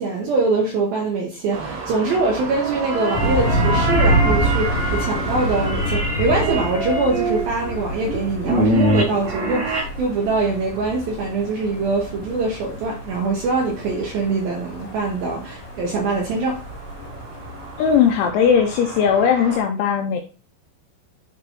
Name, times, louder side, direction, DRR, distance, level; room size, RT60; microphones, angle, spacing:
voice 1, 0.0-16.6, right 3 dB, 80° right, -1 dB, 2.1 m, -23 dB
sound 1, 1.5-19.6, right 4 dB, 60° right, 4.7 m, -36 dB
sound 2, 2.4-9.8, right 1 dB, 45° right, 3.2 m, -25 dB
sound 3, 3.1-18.3, equal, 65° left, 2.1 m, -27 dB
voice 2, 17.8-20.2, left 7 dB, 85° left, 4 dB, 2.7 m, -18 dB
11.5 x 4.1 x 3.0 m, 0.35 s
omnidirectional pair, 6.0 m